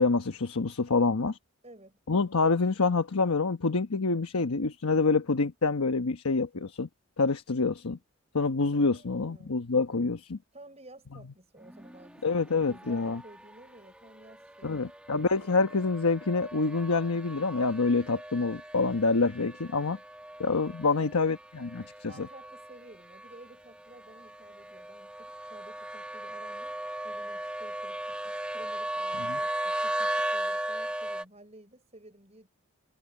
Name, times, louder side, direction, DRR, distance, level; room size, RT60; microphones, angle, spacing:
voice 1, 0.0-1.4 2.1-6.9 7.2-8.0 8.3-10.4 12.2-13.2 14.6-20.0 20.4-22.3 29.2-29.4, left 3 dB, 85° left, 1.0 m, -27 dB
voice 2, 0.9-1.3 1.6-2.0 8.8-9.6 10.5-14.9 20.8-21.1 22.1-26.8 27.0-32.5, right 1 dB, 30° right, 5.8 m, -53 dB
sound 1, 11.6-31.2, right 1 dB, 5° right, 1.5 m, -37 dB
head